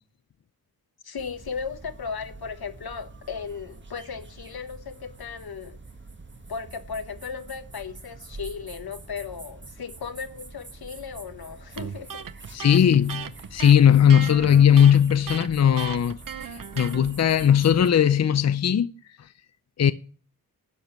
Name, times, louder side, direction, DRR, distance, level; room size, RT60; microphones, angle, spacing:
voice 1, 1.0-5.8 6.5-12.2 12.6-12.7, left 6 dB, 85° left, 1.3 m, -36 dB
sound 1, 1.2-17.9, right 3 dB, 30° right, 1.3 m, -45 dB
Electric guitar, 11.8-17.0, right 7 dB, 60° right, 0.8 m, -36 dB
voice 2, 12.5-18.9 19.8-19.9, left 9 dB, 45° left, 0.5 m, -18 dB
12.0 x 7.1 x 5.9 m
wide cardioid pair, 115°, 36 cm